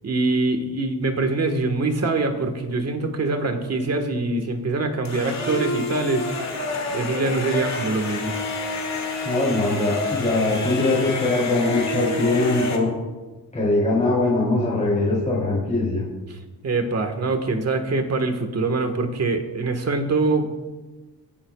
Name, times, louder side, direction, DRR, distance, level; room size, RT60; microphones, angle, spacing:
voice 1, 0.0-6.5 6.9-8.4 16.6-20.5, right 3 dB, 40° right, 6 dB, 1.5 m, -24 dB
sound 1, 5.0-12.8, left 3 dB, 45° left, 2.1 m, -29 dB
voice 2, 9.2-12.9 13.5-16.0, left 2 dB, 20° left, -6 dB, 3.5 m, -21 dB
28.0 x 11.5 x 2.4 m, 1.2 s
wide cardioid pair, 170°, 39 cm